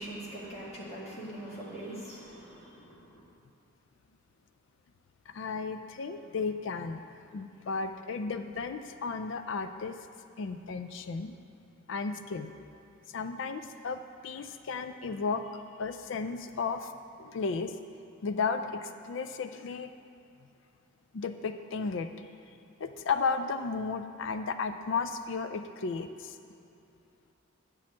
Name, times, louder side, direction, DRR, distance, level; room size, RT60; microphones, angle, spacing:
voice 1, 0.0-3.2, right 1 dB, 30° left, -6 dB, 1.8 m, -42 dB
voice 2, 5.3-7.1 7.3-10.0 10.4-11.3 11.9-12.5 13.1-16.9 17.2-17.7 18.2-19.9 21.1-22.1 22.8-26.4, left 4 dB, 60° left, 9 dB, 0.4 m, -34 dB
9.0 x 4.3 x 7.2 m, 2.7 s
head